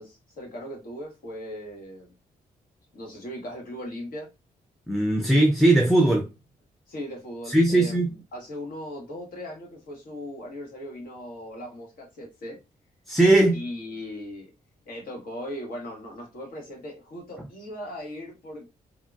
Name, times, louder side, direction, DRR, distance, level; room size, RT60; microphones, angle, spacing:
voice 1, 0.0-2.1 2.9-4.3 6.9-12.6 13.5-14.5 14.8-18.7, left 1 dB, 70° left, 1.3 m, -38 dB
voice 2, 4.9-6.3 7.5-8.1 13.1-13.6, right 1 dB, ahead, 0.5 m, -19 dB
3.6 x 2.2 x 2.3 m
cardioid pair, 80°, 15 cm